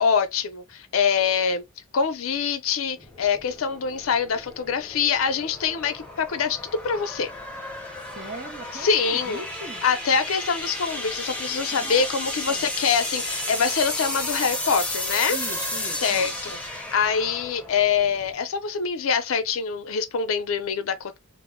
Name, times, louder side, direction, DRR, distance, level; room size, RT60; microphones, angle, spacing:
voice 1, 0.0-1.6 1.9-7.3 8.8-9.4 9.8-15.4 16.0-16.6 16.9-21.2, left 6 dB, 75° left, 0.5 m, -24 dB
sound 1, 3.0-18.4, left 1 dB, 5° left, 0.6 m, -33 dB
voice 2, 8.0-10.0 11.8-12.1 12.4-12.7 15.3-16.3, right 2 dB, 40° right, 0.6 m, -40 dB
2.0 x 2.0 x 3.6 m
head